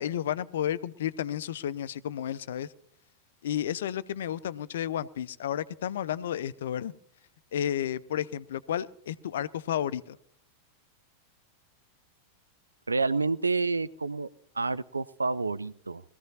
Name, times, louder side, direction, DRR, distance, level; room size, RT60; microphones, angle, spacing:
voice 1, 0.0-2.7 3.4-6.9 7.5-10.2, left 10 dB, 60° left, 18 dB, 0.5 m, -32 dB
voice 2, 12.9-14.3 14.6-16.0, right 3 dB, 80° right, 16 dB, 0.5 m, -29 dB
22.0 x 15.0 x 2.8 m, 0.69 s
figure-of-eight pair, 90°, 0 cm